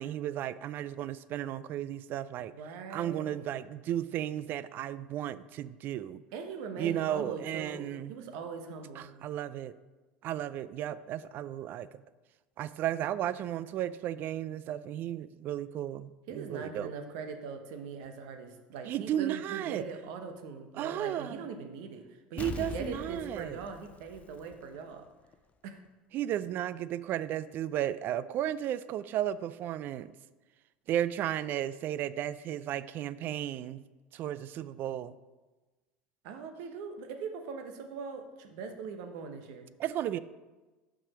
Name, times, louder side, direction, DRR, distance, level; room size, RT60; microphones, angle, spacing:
voice 1, 0.0-2.5 2.9-6.2 6.8-8.2 9.0-9.7 10.2-11.9 12.6-16.9 18.8-19.8 20.7-21.4 22.3-23.6 26.1-30.1 30.9-33.8 34.1-35.2 39.8-40.2, right 11 dB, 50° right, 16 dB, 0.3 m, -34 dB
voice 2, 2.5-3.6 6.3-9.1 16.3-22.0 22.3-25.1 25.6-25.8 36.2-39.7, right 5 dB, 65° right, 6 dB, 0.9 m, -41 dB
Explosion, 22.4-25.0 25.3-25.4, left 6 dB, 30° left, 0.5 m, -43 dB
5.9 x 4.9 x 6.0 m, 1.2 s
hypercardioid pair, 90°, 4 cm